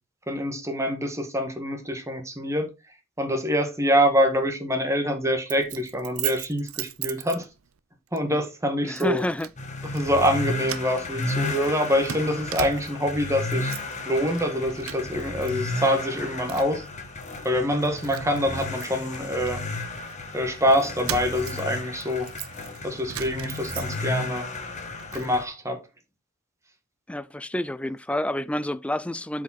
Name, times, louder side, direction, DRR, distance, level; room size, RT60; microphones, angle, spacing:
voice 1, 0.3-2.7 3.2-7.5 8.1-9.2 9.9-13.7 14.0-16.8 17.4-19.6 20.3-22.3 22.8-24.5 25.1-25.8, equal, 15° right, 1.5 m, -25 dB
Keys jangling, 5.5-7.8 8.2-8.4 9.0-9.6 9.9-10.4 10.6-13.1 13.4-14.0 14.3-15.5 15.8-16.9 17.4-17.5 17.8-20.1 20.7-24.3 24.6-25.3, right 11 dB, 80° right, 0.6 m, -38 dB
voice 2, 8.8-9.5 27.1-29.4, left 1 dB, 5° left, 0.3 m, -29 dB
sound 1, 9.6-25.4, left 2 dB, 35° left, 1.4 m, -33 dB
7.9 x 5.0 x 4.0 m
head